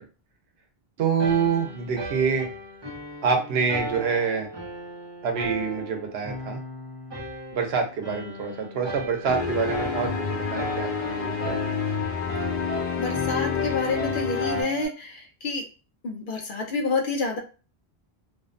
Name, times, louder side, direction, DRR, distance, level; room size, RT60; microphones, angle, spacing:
voice 1, 1.0-2.5 3.2-4.5 5.2-6.6 7.5-11.9, right 6 dB, 85° right, 4 dB, 0.9 m, -26 dB
sound 1, 1.2-14.9, right 1 dB, 35° right, 0.5 m, -36 dB
sound 2, 9.3-14.6, left 6 dB, 90° left, 0.9 m, -28 dB
voice 2, 13.0-15.6 16.0-17.4, left 3 dB, 60° left, 1 dB, 0.7 m, -28 dB
2.5 x 2.0 x 2.4 m, 0.34 s
omnidirectional pair, 1.0 m